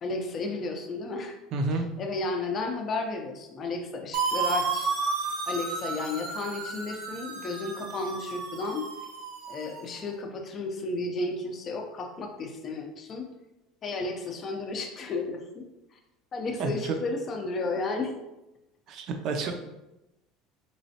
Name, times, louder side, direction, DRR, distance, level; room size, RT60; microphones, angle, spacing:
voice 1, 0.0-1.4 2.0-4.9 5.5-8.9 9.5-13.2 13.8-15.6 15.9-16.0 16.3-18.1, left 3 dB, 30° left, 3 dB, 0.5 m, -33 dB
voice 2, 1.5-1.9 16.6-17.0 18.9-19.5, right 3 dB, 45° right, 5 dB, 0.5 m, -29 dB
sound 1, 4.1-9.9, right 4 dB, 70° right, 0.9 m, -32 dB
4.2 x 3.1 x 2.7 m, 0.96 s
cardioid pair, 155°, 0 cm